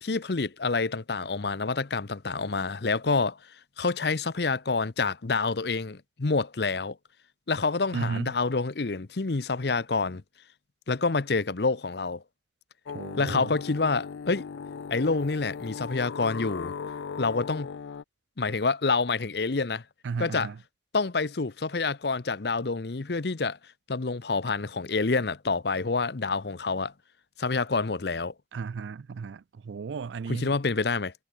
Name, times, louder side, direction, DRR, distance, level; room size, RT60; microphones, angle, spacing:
voice 1, 0.0-3.4 3.8-7.0 7.5-10.2 10.9-12.2 13.2-14.5 14.9-16.7 17.2-17.7 18.4-19.8 20.2-20.5 20.9-23.6 23.9-26.9 27.4-28.3 30.3-31.1, left 4 dB, 60° left, 0.8 m, -27 dB
voice 2, 7.9-8.3 12.9-13.5 20.0-20.6 28.5-30.5, right 5 dB, 75° right, 0.4 m, -34 dB
sound 1, 12.9-18.0, left 6 dB, 85° left, 0.4 m, -38 dB
head